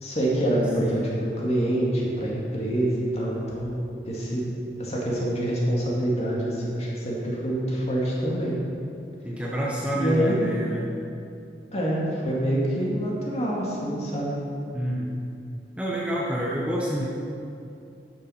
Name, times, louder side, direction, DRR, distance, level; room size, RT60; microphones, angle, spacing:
voice 1, 0.0-3.8 4.1-4.4 4.8-8.5 9.9-10.5 11.7-14.3, right 1 dB, 35° left, -5 dB, 2.2 m, -26 dB
voice 2, 9.2-10.8 14.7-15.2 15.8-17.1, equal, 5° right, -5 dB, 0.9 m, -28 dB
11.0 x 6.3 x 5.7 m, 2.5 s
head